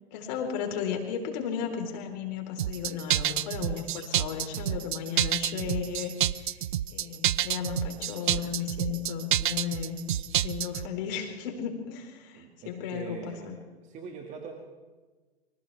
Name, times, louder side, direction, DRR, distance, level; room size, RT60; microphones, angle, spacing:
voice 1, 0.1-6.6 6.9-10.0 10.4-13.5, left 7 dB, 40° left, 3 dB, 4.3 m, -34 dB
sound 1, 2.6-10.9, right 12 dB, 50° right, 0.6 m, -28 dB
voice 2, 12.3-13.5 13.8-14.5, right 5 dB, 20° right, 1 dB, 2.3 m, -42 dB
30.0 x 25.0 x 3.5 m, 1.3 s
figure-of-eight pair, 115°, 33 cm